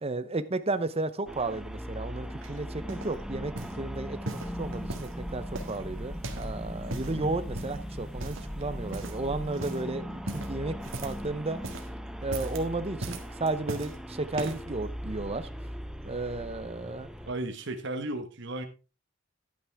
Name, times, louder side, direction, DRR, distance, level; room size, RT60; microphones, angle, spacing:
voice 1, 0.0-3.5 3.8-10.7 11.0-11.6 12.2-15.5 16.0-17.1, right 2 dB, 30° right, 0.8 m, -33 dB
sound 1, 1.3-17.3, equal, 5° right, 0.7 m, -39 dB
sound 2, 2.4-3.2 3.6-3.8 4.2-5.2 5.5-6.5 6.8-7.2 7.5-7.9 8.2-8.6 8.9-9.3 9.5-9.9 10.3-11.3 11.5-11.9 12.2-12.6 13.0-14.0 14.3-14.7 15.4-15.5, right 2 dB, 80° right, 1.7 m, -39 dB
sound 3, 4.4-9.6, equal, 55° left, 3.3 m, -42 dB
voice 2, 7.0-7.4 17.3-18.7, right 2 dB, 65° right, 1.4 m, -35 dB
11.5 x 9.4 x 3.5 m
head